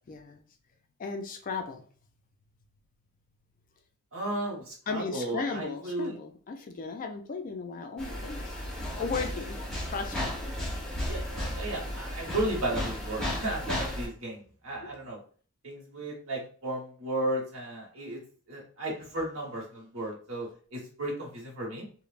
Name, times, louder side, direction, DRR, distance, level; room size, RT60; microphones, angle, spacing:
voice 1, 0.1-0.4 1.0-1.8 4.9-9.6 9.9-10.5, left 4 dB, 35° left, 5 dB, 0.3 m, -36 dB
voice 2, 4.1-6.1 11.0-11.2 11.5-15.2 15.6-18.2 18.5-21.9, right 1 dB, 60° right, -3 dB, 1.1 m, -34 dB
sound 1, 8.0-14.1, left 1 dB, 5° left, 0.6 m, -34 dB
3.1 x 2.1 x 2.4 m, 0.43 s
head